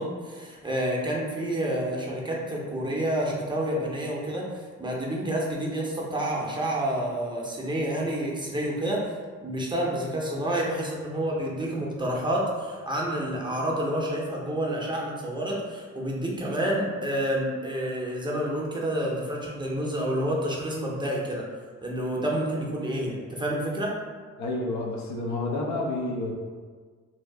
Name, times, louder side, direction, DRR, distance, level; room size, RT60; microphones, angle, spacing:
voice 1, 0.0-9.0 9.4-21.4 21.8-23.9, right 1 dB, 15° right, -4 dB, 0.6 m, -29 dB
voice 2, 24.4-26.3, left 2 dB, 65° left, 0 dB, 0.6 m, -29 dB
2.7 x 2.3 x 3.4 m, 1.5 s
cardioid pair, 90°, 30 cm